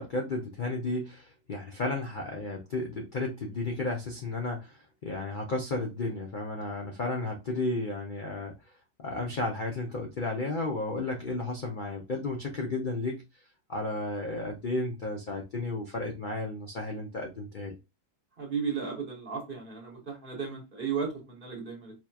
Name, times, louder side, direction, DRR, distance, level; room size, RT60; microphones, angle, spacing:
voice 1, 0.0-8.6 9.0-13.2 13.7-17.8, left 2 dB, 55° left, 0.5 m, -33 dB
voice 2, 18.4-21.9, right 6 dB, 35° right, 1.1 m, -34 dB
4.5 x 2.9 x 2.3 m
omnidirectional pair, 1.8 m